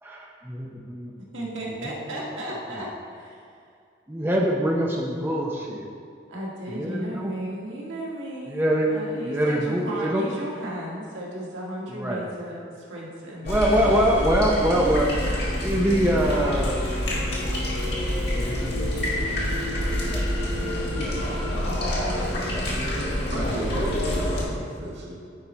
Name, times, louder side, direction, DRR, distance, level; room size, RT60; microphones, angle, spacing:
voice 1, 0.0-1.1 1.4-1.5 1.8-1.9 4.1-5.9 6.7-7.3 8.5-9.0 9.2-10.3 12.0-12.2 13.4-15.1 15.6-16.8 18.3-19.5 20.0-20.3 20.9-21.3, equal, 10° right, -2 dB, 0.5 m, -24 dB
voice 2, 1.3-3.7 6.3-13.9 14.5-14.9 20.4-22.9, right 1 dB, 90° right, -4 dB, 1.7 m, -36 dB
sound 1, 13.4-24.4, left 1 dB, 60° left, 1.9 m, -27 dB
voice 3, 22.4-22.8 23.3-25.1, equal, 65° right, -4 dB, 1.5 m, -34 dB
9.8 x 4.3 x 4.4 m, 2.3 s
head